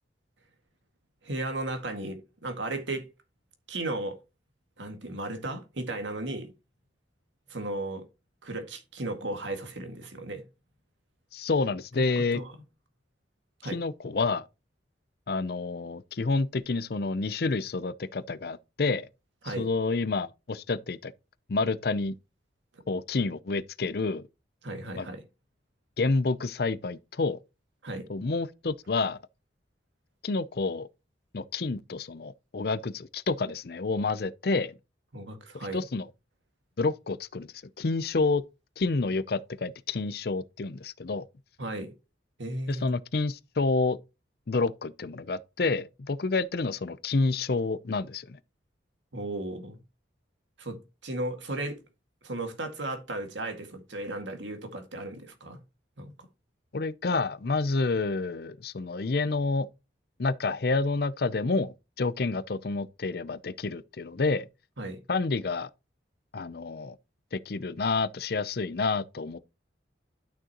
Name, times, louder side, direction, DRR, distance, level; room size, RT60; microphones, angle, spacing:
voice 1, 1.2-3.1 3.7-4.2 4.8-6.5 7.5-8.0 8.4-10.4 12.3-12.5 13.6-13.8 19.4-19.7 24.6-25.2 27.8-28.1 35.1-35.8 41.6-41.9 42.4-43.0 49.1-49.8 50.6-51.8 52.2-55.6 56.0-56.1 64.8-65.0, right 2 dB, 75° right, 1.9 m, -35 dB
voice 2, 11.3-12.4 13.7-14.4 15.3-19.1 19.4-21.1 21.5-22.1 22.9-24.2 25.0-25.1 26.0-27.4 28.1-29.2 30.2-30.9 31.3-34.7 35.5-36.1 36.8-37.5 37.8-38.4 38.8-41.2 42.7-44.0 44.5-48.4 56.7-59.7 60.2-64.5 65.1-65.7 66.3-66.9 67.3-69.4, left 3 dB, 55° left, 0.5 m, -29 dB
11.5 x 6.3 x 2.9 m
head